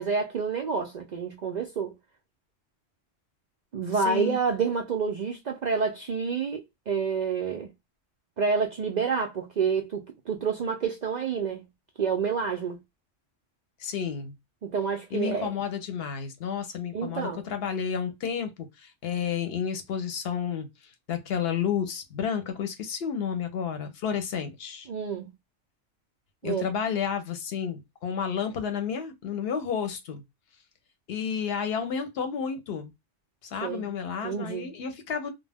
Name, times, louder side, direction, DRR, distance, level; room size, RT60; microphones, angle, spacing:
voice 1, 0.0-1.9 3.7-7.7 8.4-11.6 12.0-12.8 14.6-15.5 16.9-17.4 24.9-25.3 26.4-26.7 33.6-33.9 34.2-34.7, right 5 dB, 75° right, 0.4 m, -28 dB
voice 2, 4.0-4.4 13.8-14.3 15.1-18.5 18.8-20.7 21.1-24.9 26.4-30.2 31.1-32.9 33.5-35.3, left 7 dB, 60° left, 0.8 m, -31 dB
2.3 x 2.1 x 3.3 m
omnidirectional pair, 1.3 m